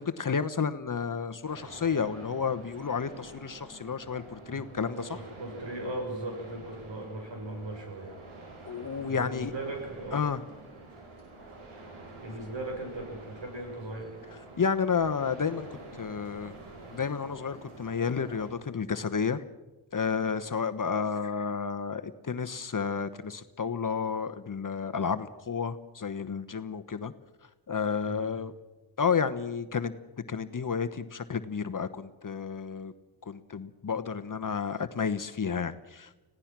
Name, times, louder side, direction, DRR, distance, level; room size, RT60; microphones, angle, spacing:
voice 1, 0.0-5.1 8.7-9.5 10.1-10.4 14.6-15.7 15.9-16.5 16.9-19.4 19.9-27.1 27.7-28.5 29.0-29.9 30.3-32.9 33.3-36.2, left 6 dB, 40° left, 9 dB, 1.1 m, -31 dB
sound 1, 1.4-18.5, right 2 dB, 90° right, 4.6 m, -48 dB
voice 2, 4.9-8.1 9.1-10.2 12.2-14.2 28.0-28.3, right 2 dB, 60° right, 1 dB, 7.6 m, -38 dB
25.5 x 17.0 x 6.1 m, 1.1 s
cardioid pair, 65°, 49 cm